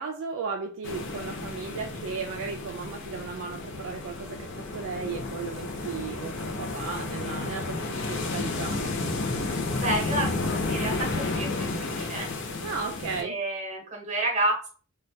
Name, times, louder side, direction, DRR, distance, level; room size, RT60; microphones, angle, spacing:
voice 1, 0.0-9.0 12.6-13.4, right 5 dB, 65° right, 3 dB, 0.3 m, -35 dB
sound 1, 0.8-13.2, left 3 dB, 60° left, 0.5 m, -32 dB
voice 2, 9.7-12.3 13.2-14.7, right 1 dB, 35° right, 0 dB, 0.9 m, -30 dB
3.2 x 2.2 x 2.7 m, 0.39 s
head